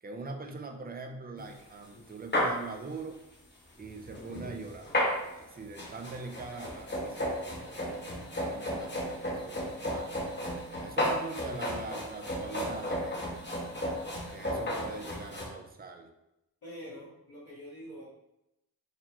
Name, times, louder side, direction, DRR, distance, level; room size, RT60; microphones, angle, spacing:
voice 1, 0.0-3.2 3.7-4.9 5.3-8.0 8.4-10.3 10.8-13.4 14.3-16.1, right 3 dB, 25° right, 5 dB, 0.4 m, -43 dB
sound 1, 1.4-1.5 1.9-2.0 2.3-2.6 3.8-15.5, equal, 30° left, 0.8 m, -33 dB
voice 2, 10.7-11.0 16.6-18.0, equal, 70° left, -7 dB, 1.4 m, -46 dB
4.2 x 2.9 x 2.9 m, 0.88 s
wide cardioid pair, 70°, 37 cm